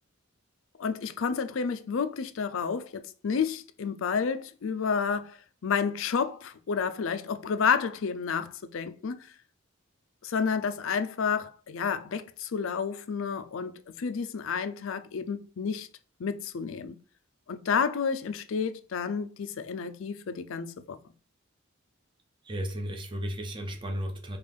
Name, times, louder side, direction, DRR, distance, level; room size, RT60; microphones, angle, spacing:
voice 1, 0.8-5.4 5.6-9.3 10.2-15.9 16.2-17.0 17.5-21.0, left 6 dB, 80° left, 0.4 m, -30 dB
voice 2, 22.4-24.4, equal, 25° right, 0.6 m, -34 dB
5.2 x 2.4 x 3.3 m
head